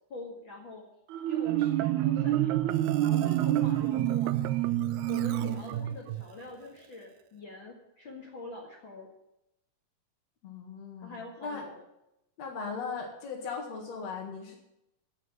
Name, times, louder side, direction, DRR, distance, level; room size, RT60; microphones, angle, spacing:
voice 1, 0.1-0.8 1.3-2.8 3.0-4.7 5.1-9.1 11.0-11.8, left 3 dB, 45° left, -1 dB, 2.5 m, -45 dB
Marimba xylophone, 1.1-6.2, right 13 dB, 85° right, 2.0 m, -27 dB
voice 2, 10.4-11.6 12.4-14.6, left 5 dB, 65° left, -1 dB, 3.0 m, -38 dB
15.5 x 5.9 x 9.2 m, 0.85 s
omnidirectional pair, 3.3 m